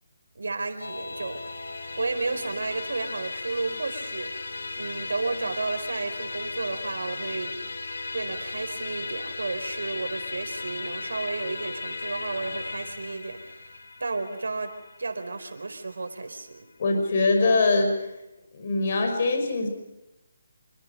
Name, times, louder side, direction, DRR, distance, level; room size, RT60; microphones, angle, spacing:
voice 1, 0.3-7.5 8.1-14.7 15.0-16.7, right 3 dB, 80° right, 7 dB, 4.3 m, -32 dB
Musical instrument, 0.8-16.3, left 3 dB, 75° left, 3.7 m, -36 dB
voice 2, 16.8-18.1 18.5-19.7, left 3 dB, 40° left, 5 dB, 5.4 m, -23 dB
27.0 x 24.5 x 5.5 m, 0.95 s
hypercardioid pair, 170°, 0 cm